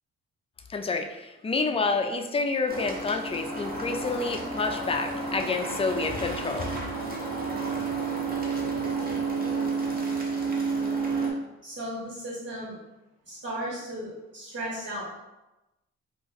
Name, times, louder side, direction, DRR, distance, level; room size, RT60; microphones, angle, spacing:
voice 1, 0.7-6.7, left 4 dB, 20° left, 5 dB, 0.3 m, -28 dB
sound 1, 2.7-11.3, right 4 dB, 30° right, 0.8 m, -30 dB
voice 2, 11.6-12.8 13.2-15.0, right 1 dB, 60° right, -7 dB, 1.3 m, -35 dB
2.5 x 2.4 x 3.8 m, 1.0 s
cardioid pair, 80°, 30 cm